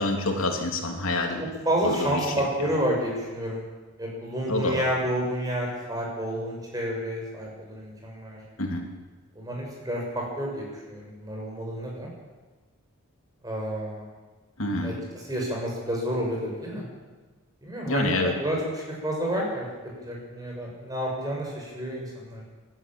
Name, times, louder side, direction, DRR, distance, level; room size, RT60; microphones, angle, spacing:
voice 1, 0.0-1.4 1.8-2.7 4.5-4.9 8.6-8.8 14.6-14.9 17.8-18.4, left 2 dB, 65° left, 2 dB, 3.1 m, -27 dB
voice 2, 1.6-3.6 4.0-8.4 9.3-12.1 13.4-14.0 14.8-14.9 15.3-16.8 17.6-18.1 18.4-19.7 20.0-22.4, equal, 15° right, -2 dB, 6.5 m, -30 dB
22.0 x 13.5 x 9.0 m, 1.3 s
head